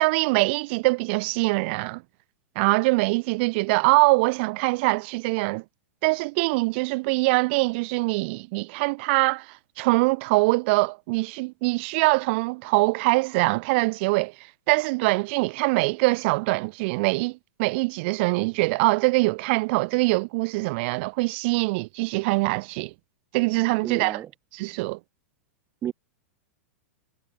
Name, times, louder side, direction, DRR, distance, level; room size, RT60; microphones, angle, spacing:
voice 1, 0.0-2.0 2.6-5.6 6.0-14.3 14.7-22.9 23.3-24.2 24.5-25.0, right 26 dB, 50° right, 4.2 m, -23 dB
voice 2, 23.8-24.3 25.8-25.9, right 10 dB, 30° right, 5.2 m, -31 dB
hypercardioid pair, 100°, 7 cm